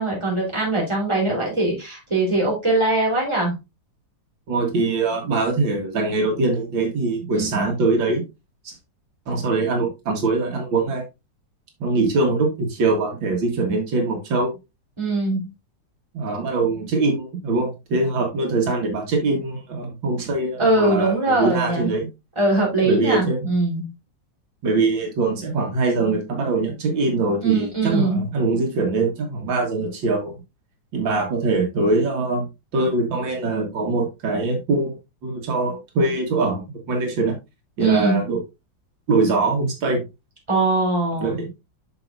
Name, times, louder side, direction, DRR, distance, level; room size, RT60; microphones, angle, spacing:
voice 1, 0.0-3.6 7.3-7.7 15.0-15.5 20.6-21.9 22.4-23.9 27.4-28.3 37.8-38.2 40.5-41.4, right 2 dB, 15° right, -2 dB, 3.6 m, -21 dB
voice 2, 4.5-8.2 8.6-8.7 9.3-11.0 11.8-14.5 16.1-22.1 22.8-23.4 24.6-30.3 30.9-32.5 32.7-37.4 37.8-38.4 39.1-40.0 41.2-41.5, right 3 dB, 80° right, 2 dB, 2.3 m, -22 dB
8.6 x 6.3 x 2.5 m, 0.23 s
omnidirectional pair, 2.1 m